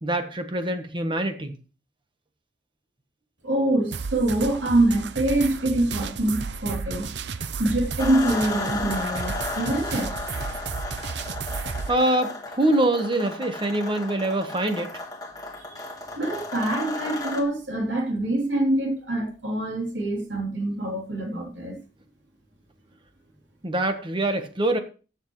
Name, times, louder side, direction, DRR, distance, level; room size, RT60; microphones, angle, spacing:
voice 1, 0.0-1.5 11.9-14.9 23.6-24.8, right 1 dB, 30° right, 1.2 m, -24 dB
voice 2, 3.4-7.1 7.6-10.4 15.5-15.8 16.1-21.8, right 1 dB, 85° right, 3.2 m, -25 dB
sound 1, 3.9-11.9, right 5 dB, 70° right, 0.6 m, -33 dB
sound 2, 8.0-17.4, left 2 dB, 20° left, 1.5 m, -34 dB
14.5 x 7.1 x 3.1 m
head